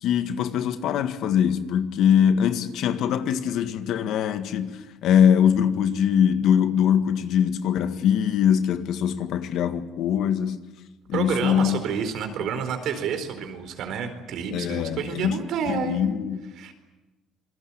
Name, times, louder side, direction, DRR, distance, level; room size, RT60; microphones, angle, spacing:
voice 1, 0.0-10.6 11.1-11.8 14.5-15.4 15.7-16.4, left 8 dB, 70° left, 1.8 m, -22 dB
voice 2, 11.1-16.0 16.6-16.7, right 6 dB, 70° right, 4.4 m, -29 dB
28.0 x 21.0 x 8.8 m
cardioid pair, 120°, 0 cm